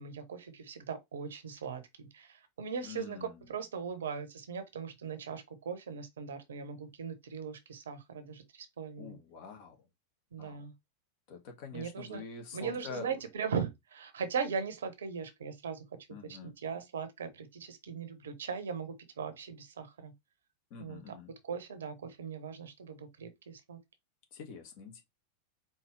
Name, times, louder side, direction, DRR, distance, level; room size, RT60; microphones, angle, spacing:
voice 1, 0.0-9.2 10.3-10.7 11.7-12.2 12.5-15.8 16.2-20.1 20.8-21.1 21.4-23.8, right 6 dB, 65° right, 0.9 m, -39 dB
voice 2, 2.8-3.5 9.0-9.8 10.4-10.7 11.3-13.2 16.1-16.5 20.7-21.3 24.3-25.0, left 5 dB, 45° left, 1.4 m, -46 dB
4.6 x 2.9 x 3.1 m
figure-of-eight pair, 90°, 0 cm